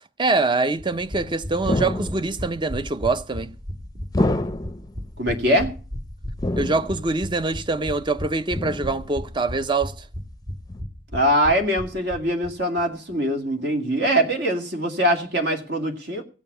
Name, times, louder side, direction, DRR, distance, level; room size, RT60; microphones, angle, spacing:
voice 1, 0.2-3.5 6.6-9.9, right 3 dB, 25° right, 0.6 m, -24 dB
sound 1, 0.8-12.5 12.8-12.9 13.1-13.2, equal, 45° right, 2.3 m, -35 dB
sound 2, 1.7-2.5 4.1-4.9 6.4-7.1 8.5-9.1 10.7-10.8, left 2 dB, 20° left, 0.6 m, -26 dB
voice 2, 5.2-5.7 11.1-16.2, equal, 60° right, 2.2 m, -22 dB
16.0 x 7.3 x 6.8 m
head